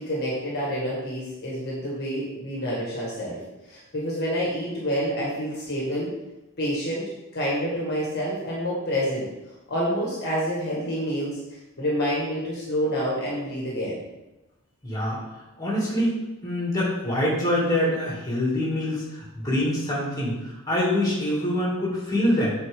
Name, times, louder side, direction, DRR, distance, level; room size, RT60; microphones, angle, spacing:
voice 1, 0.0-6.1 6.6-9.3 9.7-11.4 11.8-14.0, equal, 50° left, -5 dB, 1.5 m, -28 dB
voice 2, 14.8-15.2 15.6-22.5, left 1 dB, 15° left, -6 dB, 2.4 m, -25 dB
7.7 x 4.2 x 3.6 m, 1.0 s
head